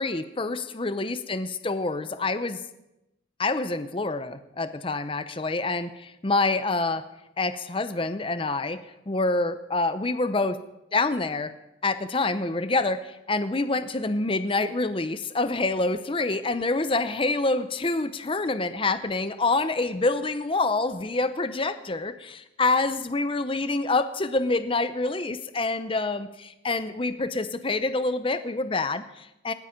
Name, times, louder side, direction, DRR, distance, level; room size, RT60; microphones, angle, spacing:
voice 1, 0.0-2.6 3.4-7.1 7.4-8.8 9.1-10.6 10.9-11.5 11.8-29.5, left 3 dB, 25° left, 11 dB, 0.7 m, -27 dB
19.0 x 13.0 x 5.2 m, 0.89 s
head